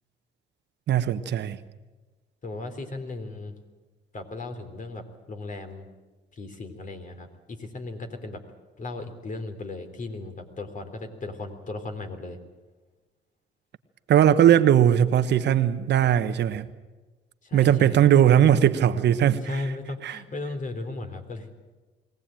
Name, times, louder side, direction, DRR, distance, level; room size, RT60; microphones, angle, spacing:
voice 1, 0.9-1.6 14.1-16.7 17.5-19.6 20.0-20.2, right 10 dB, 60° right, 1.2 m, -19 dB
voice 2, 2.4-3.5 4.1-5.9 6.3-8.4 8.8-12.4 17.4-18.1 19.4-21.5, left 2 dB, 40° left, 3.6 m, -36 dB
22.5 x 17.5 x 9.0 m
cardioid pair, 85°, 20 cm